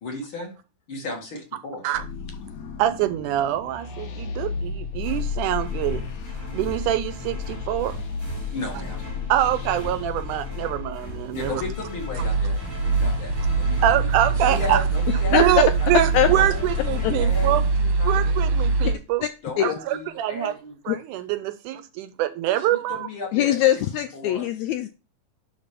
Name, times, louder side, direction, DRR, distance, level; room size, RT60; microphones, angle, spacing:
voice 1, 0.0-0.5 0.9-1.9 8.5-9.1 11.3-12.6 13.0-14.1 14.4-15.9 16.3-18.3 19.4-20.7 22.6-23.6 24.1-24.5, left 2 dB, 40° left, 0 dB, 2.7 m, -34 dB
sound 1, 1.9-10.2, left 5 dB, 65° left, 2.4 m, -34 dB
voice 2, 2.8-6.0 6.5-7.9 9.3-11.6 13.8-14.8 15.3-17.6 18.1-19.2 19.6-20.5 20.9-23.1, right 12 dB, 80° right, 12 dB, 2.0 m, -24 dB
sound 2, 5.0-18.6, left 4 dB, 5° left, 2.3 m, -35 dB
sound 3, 12.2-18.9, right 4 dB, 50° right, 1.5 m, -23 dB
voice 3, 15.3-15.6 16.1-16.3 17.0-17.1 19.2-19.3 19.6-19.7 20.9-21.0 23.3-24.9, left 12 dB, 90° left, 9 dB, 1.6 m, -21 dB
11.0 x 4.0 x 5.2 m, 0.32 s
omnidirectional pair, 3.8 m